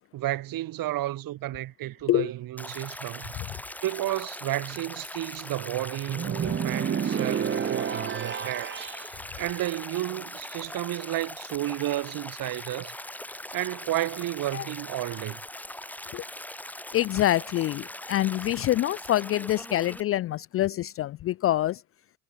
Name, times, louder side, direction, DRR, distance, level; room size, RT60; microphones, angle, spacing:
voice 1, 0.1-3.3 3.8-8.9 9.4-12.9 13.5-15.4, right 15 dB, 45° right, 4.8 m, -32 dB
Stream, 2.6-20.0, left 1 dB, 5° left, 2.3 m, -41 dB
sound 1, 6.1-9.1, right 8 dB, 25° right, 1.8 m, -30 dB
voice 2, 16.9-21.8, left 14 dB, 30° left, 0.5 m, -26 dB
hypercardioid pair, 100°, 46 cm